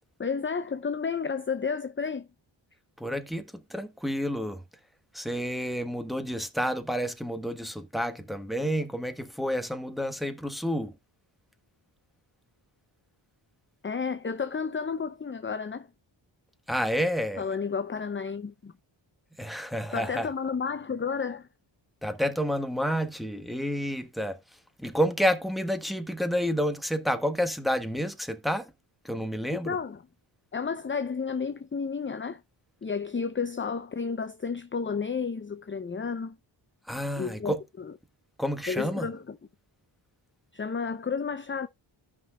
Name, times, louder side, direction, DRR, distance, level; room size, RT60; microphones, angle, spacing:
voice 1, 0.2-2.3 13.8-15.9 17.4-18.7 19.9-21.5 29.5-30.0 30.5-32.4 32.8-36.4 37.2-37.5 38.7-39.4 40.5-41.7, left 5 dB, 25° left, 0.6 m, -31 dB
voice 2, 3.0-4.6 5.1-11.0 16.7-17.4 19.4-20.3 22.0-28.7 29.0-29.8 36.8-37.6 38.4-39.1, equal, ahead, 1.4 m, -30 dB
14.0 x 6.0 x 2.3 m
cardioid pair, 60°, 49 cm